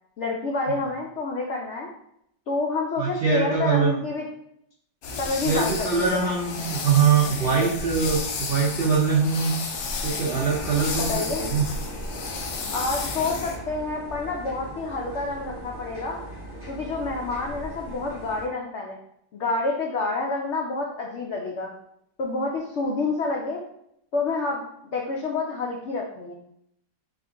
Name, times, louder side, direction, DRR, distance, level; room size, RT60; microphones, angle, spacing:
voice 1, 0.2-1.9 2.5-4.3 5.2-6.2 11.1-11.4 12.7-16.2 16.7-19.0 19.3-21.7 22.2-23.6 24.1-24.6 24.9-26.3, left 3 dB, 85° left, -1 dB, 0.6 m, -28 dB
voice 2, 3.0-4.0 5.4-9.5 10.0-11.6, right 5 dB, 80° right, -4 dB, 0.5 m, -23 dB
sound 1, 5.0-13.6, left 4 dB, 70° left, 1.0 m, -32 dB
sound 2, 10.3-18.5, right 1 dB, 10° right, 1.2 m, -38 dB
3.7 x 2.5 x 3.7 m, 0.73 s
omnidirectional pair, 1.9 m